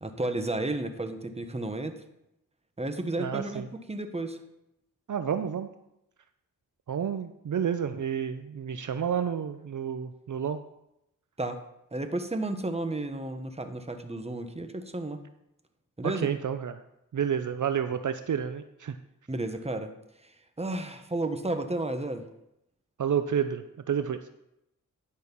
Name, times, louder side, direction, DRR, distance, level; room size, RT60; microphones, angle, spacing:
voice 1, 0.0-2.0 2.8-4.4 11.4-11.6 11.9-15.2 16.0-16.3 19.3-19.9 20.2-20.3 20.6-22.3, right 2 dB, 20° right, 8 dB, 1.1 m, -32 dB
voice 2, 3.2-3.7 5.1-5.7 6.9-10.6 16.0-16.8 17.1-19.0 23.0-24.3, right 8 dB, 60° right, 10 dB, 0.6 m, -30 dB
10.5 x 6.4 x 5.5 m, 0.85 s
cardioid pair, 60°, 34 cm